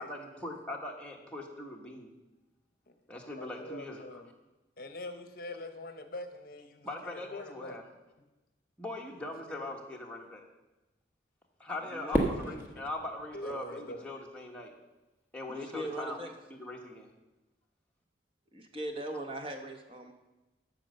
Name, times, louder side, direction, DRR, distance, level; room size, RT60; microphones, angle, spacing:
voice 1, 0.0-2.1 3.1-4.2 6.8-7.8 8.8-10.4 11.6-14.7 15.3-16.2 16.5-17.1, left 2 dB, 5° left, -1 dB, 1.3 m, -41 dB
voice 2, 2.9-4.3 4.8-7.8 9.2-9.7 12.4-12.6 13.3-14.1, left 1 dB, 55° left, 8 dB, 0.8 m, -44 dB
voice 3, 11.9-12.4 15.5-16.3 18.5-20.1, right 1 dB, 30° right, 4 dB, 1.0 m, -39 dB
Fireworks, 12.1-14.4, right 1 dB, 10° right, 1.2 m, -34 dB
13.0 x 5.3 x 6.5 m, 1.1 s
head